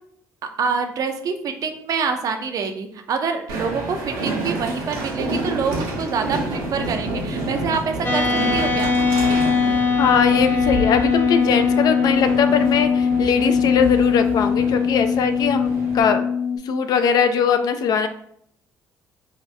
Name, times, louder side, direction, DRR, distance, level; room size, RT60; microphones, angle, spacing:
voice 1, 0.6-8.9, right 5 dB, 50° right, 6 dB, 0.5 m, -26 dB
Train, 3.5-16.0, right 2 dB, 75° right, 0.7 m, -29 dB
sound 1, 8.0-16.6, left 5 dB, 30° left, 0.8 m, -20 dB
voice 2, 10.0-16.2 16.6-18.1, left 6 dB, 60° left, 8 dB, 0.3 m, -20 dB
2.7 x 2.2 x 3.2 m, 0.69 s
hypercardioid pair, 55°, 8 cm